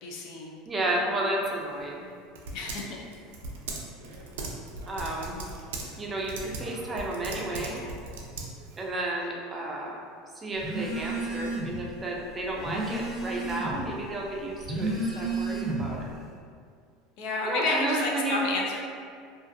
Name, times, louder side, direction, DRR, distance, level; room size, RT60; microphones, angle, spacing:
voice 1, 0.0-0.6 2.5-3.0 17.2-18.8, left 3 dB, 65° left, -1 dB, 0.4 m, -30 dB
voice 2, 0.7-2.1 4.9-5.4 6.0-7.8 8.8-10.0 10.4-16.1 17.4-18.4, right 1 dB, 20° right, -2 dB, 0.4 m, -32 dB
Typing, 1.4-8.9, right 3 dB, 90° right, 0.4 m, -39 dB
Telephone, 10.6-11.8 12.2-13.9 14.5-16.0, right 2 dB, ahead, 1.0 m, -32 dB
2.4 x 2.4 x 2.5 m, 2.2 s
supercardioid pair, 115°, 0 cm